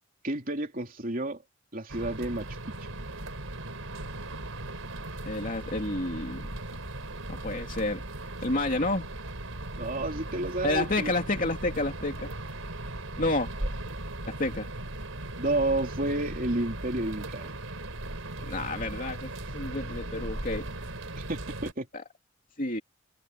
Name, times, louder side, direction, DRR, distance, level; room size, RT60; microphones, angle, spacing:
voice 1, 0.2-1.4 1.7-2.7 9.8-11.1 15.4-17.5 21.3-21.9, right 2 dB, 45° right, 3.2 m, -31 dB
sound 1, 1.9-21.7, right 1 dB, 85° right, 4.4 m, -38 dB
voice 2, 5.3-6.5 7.3-8.0 8.4-9.1 10.6-12.3 13.2-13.5 14.4-14.7 18.5-20.7 21.9-22.0 22.6-22.8, left 2 dB, 40° left, 2.9 m, -30 dB
head